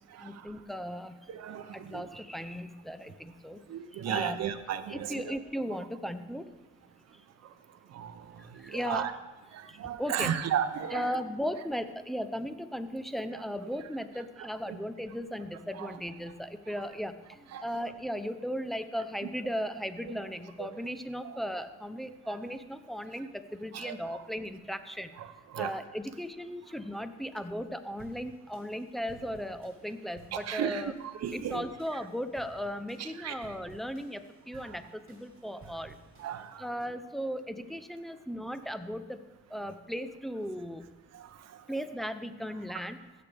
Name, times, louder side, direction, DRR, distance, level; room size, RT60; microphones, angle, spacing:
voice 1, 0.2-1.3 1.7-3.6 3.9-4.4 4.9-6.5 8.5-9.1 9.7-10.4 10.9-25.1 25.6-30.9 31.3-36.0 36.6-39.2 39.5-40.8 41.7-43.0, equal, ahead, 10 dB, 0.6 m, -37 dB
voice 2, 1.3-2.1 3.7-5.4 7.9-9.1 9.5-11.2 13.3-13.4 14.4-14.8 15.7-16.0 17.5-17.7 20.1-20.2 20.6-20.7 21.2-21.4 23.7-24.2 25.2-25.8 30.3-31.7 33.0-33.4 34.7-34.8 36.2-36.7 41.1-41.3, right 9 dB, 60° right, 8 dB, 0.8 m, -35 dB
sound 1, 28.0-36.7, right 3 dB, 45° right, 3.3 m, -56 dB
16.0 x 6.8 x 3.5 m, 1.1 s
cardioid pair, 90°, 30 cm